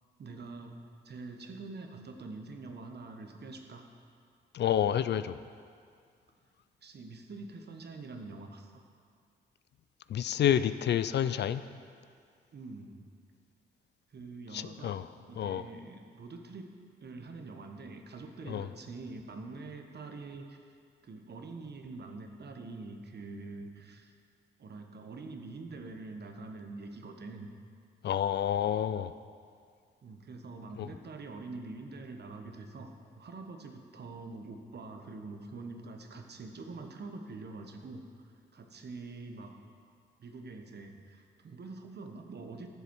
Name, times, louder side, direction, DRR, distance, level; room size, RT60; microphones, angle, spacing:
voice 1, 0.2-0.8 1.0-3.9 6.8-8.8 12.5-13.1 14.1-16.7 17.0-20.6 21.0-24.1 24.6-27.5 30.0-38.0 38.5-39.6 40.2-42.7, right 3 dB, 50° right, 5 dB, 1.2 m, -45 dB
voice 2, 4.5-5.4 10.1-11.6 14.5-15.1 15.4-15.6 18.5-18.7 28.0-29.1 30.8-30.9, left 10 dB, 55° left, 13 dB, 0.4 m, -29 dB
12.0 x 7.0 x 4.6 m, 2.2 s
hypercardioid pair, 45°, 21 cm